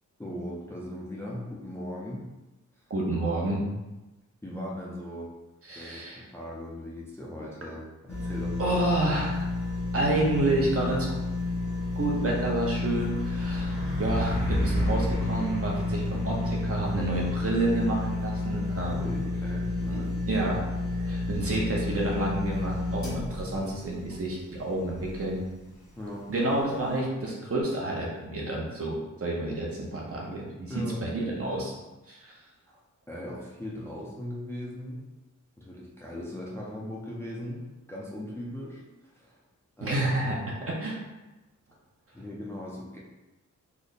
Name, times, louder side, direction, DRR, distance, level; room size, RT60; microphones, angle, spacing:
voice 1, 0.2-2.2 4.4-5.3 5.8-8.8 18.9-20.2 26.0-26.3 30.7-31.0 32.7-32.8 33.1-35.0 35.6-37.6 37.9-39.4 39.8-40.2 40.4-40.5 42.1-43.0, left 1 dB, 10° left, -5 dB, 0.4 m, -38 dB
voice 2, 2.9-3.6 5.7-6.2 8.6-9.5 9.9-11.1 12.0-19.1 19.9-20.0 20.3-20.6 20.9-25.4 26.3-31.7 32.1-32.3 39.8-40.4 40.7-41.0, right 2 dB, 45° right, -3 dB, 0.7 m, -29 dB
sound 1, 8.1-25.3 25.8-25.9, left 2 dB, 60° left, 1.1 m, -31 dB
Truck, 11.3-23.6, equal, 70° right, 1.1 m, -36 dB
3.3 x 2.1 x 3.9 m, 1.1 s
wide cardioid pair, 165°, 32 cm